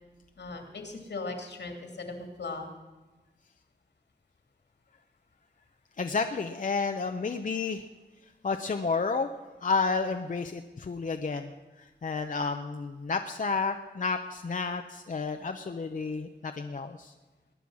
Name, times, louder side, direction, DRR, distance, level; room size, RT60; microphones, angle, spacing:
voice 1, 0.4-2.7, left 3 dB, 80° left, 4 dB, 2.5 m, -38 dB
voice 2, 6.0-7.8 8.4-9.3 9.6-11.5 11.8-17.1, left 4 dB, 50° left, 6 dB, 0.7 m, -31 dB
20.5 x 10.0 x 6.2 m, 1.2 s
wide cardioid pair, 115°, 18 cm